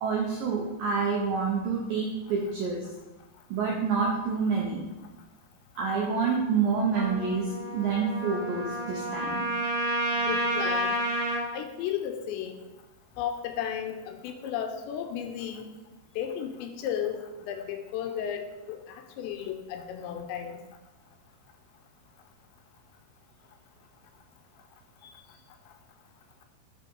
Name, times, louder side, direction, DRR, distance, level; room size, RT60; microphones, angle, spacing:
voice 1, 0.0-2.8 3.5-4.8 5.8-9.4, right 5 dB, 80° right, -1 dB, 2.0 m, -28 dB
Trumpet, 6.9-11.4, right 1 dB, 60° right, 2.2 m, -30 dB
voice 2, 10.1-11.0 11.5-12.6 13.2-15.7 16.2-20.6, left 9 dB, 85° left, 6 dB, 2.8 m, -34 dB
10.5 x 4.9 x 4.6 m, 1.1 s
omnidirectional pair, 5.4 m